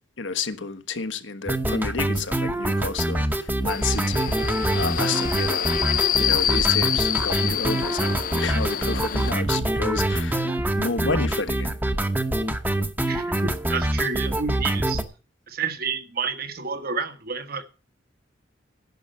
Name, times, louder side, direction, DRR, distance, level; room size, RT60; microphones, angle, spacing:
voice 1, 0.2-5.7 6.2-11.7, left 4 dB, 85° left, 1.3 m, -31 dB
sound 1, 1.5-15.0, right 1 dB, 10° right, 0.9 m, -25 dB
Subway metro underground, 3.7-9.3, left 10 dB, 45° left, 0.6 m, -26 dB
voice 2, 13.1-15.0 15.5-17.6, right 5 dB, 55° right, 1.4 m, -30 dB
11.0 x 6.6 x 8.7 m
head